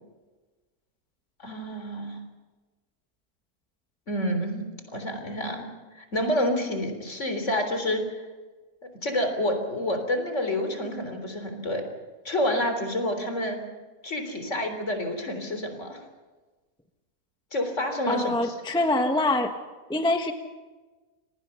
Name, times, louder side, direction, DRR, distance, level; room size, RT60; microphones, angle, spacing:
voice 1, 1.4-2.2 4.1-4.6 4.9-5.7 5.9-8.3 9.0-11.8 12.2-13.6 14.0-16.0 17.5-18.5, left 1 dB, 55° left, 6 dB, 4.0 m, -28 dB
voice 2, 18.1-19.5 19.9-20.3, left 2 dB, 5° left, 5 dB, 1.2 m, -24 dB
27.0 x 19.5 x 5.8 m, 1.3 s
omnidirectional pair, 1.5 m